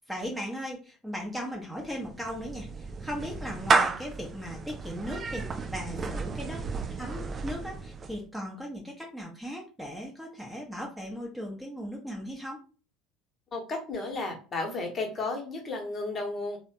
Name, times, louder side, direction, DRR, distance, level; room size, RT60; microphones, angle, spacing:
voice 1, 0.0-5.4 5.7-6.7 7.0-12.6, equal, 5° right, -1 dB, 0.8 m, -37 dB
Clapping / Meow, 1.8-8.2, right 4 dB, 30° right, 0.3 m, -32 dB
voice 2, 13.5-16.6, left 3 dB, 30° left, 1 dB, 1.0 m, -33 dB
3.3 x 2.1 x 2.8 m, 0.36 s
figure-of-eight pair, 65°, 0 cm